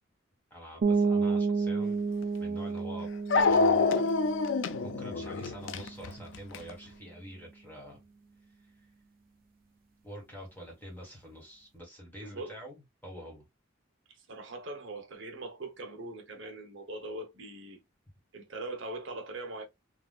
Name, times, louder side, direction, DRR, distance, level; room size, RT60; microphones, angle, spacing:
voice 1, 0.5-2.1 2.4-3.1 3.4-4.1 4.8-8.0 10.0-13.4, equal, 10° left, 1.3 m, -46 dB
sound 1, 0.8-6.4, right 4 dB, 45° right, 0.4 m, -31 dB
Dog, 2.2-2.3 3.3-6.7, left 4 dB, 65° left, 0.4 m, -26 dB
voice 2, 12.2-12.6 14.1-17.8 18.3-19.6, right 2 dB, 65° right, 0.9 m, -41 dB
3.6 x 2.4 x 2.3 m
head